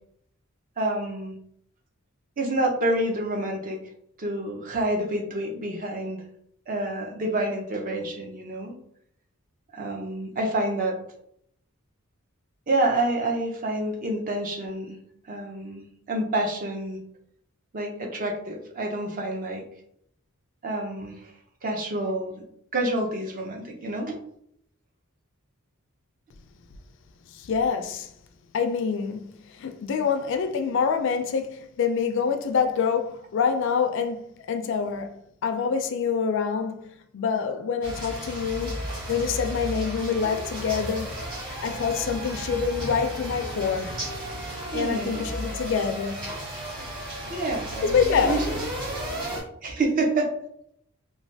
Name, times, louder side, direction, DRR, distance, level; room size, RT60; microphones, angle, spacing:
voice 1, 0.8-1.4 2.4-3.8 4.2-6.2 6.7-8.7 9.7-11.0 12.7-15.0 15.3-17.0 17.7-19.6 20.6-21.3 21.6-22.4 22.7-24.2 44.7-45.3 47.3-48.6 49.3-50.3, right 1 dB, 40° right, 0.5 m, -28 dB
voice 2, 27.3-28.1 28.5-35.2 35.4-38.8 39.1-41.1 41.6-43.9 44.7-46.3 47.8-48.4, left 6 dB, 60° left, 0.3 m, -26 dB
sound 1, 37.8-49.4, equal, 20° right, 1.1 m, -34 dB
3.1 x 2.2 x 2.6 m
head